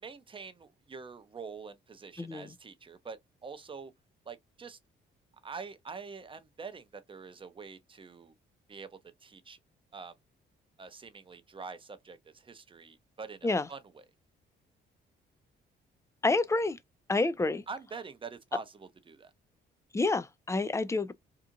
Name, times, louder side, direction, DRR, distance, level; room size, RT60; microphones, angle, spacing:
voice 1, 0.0-3.9 4.3-4.8 5.4-8.3 8.7-9.6 9.9-10.1 10.8-14.0 17.7-19.3, right 5 dB, 25° right, 0.6 m, -45 dB
voice 2, 2.2-2.5 13.4-13.6 16.2-16.8 17.1-17.6 19.9-21.1, left 3 dB, 15° left, 0.4 m, -28 dB
2.8 x 2.4 x 2.5 m
cardioid pair, 90°, 20 cm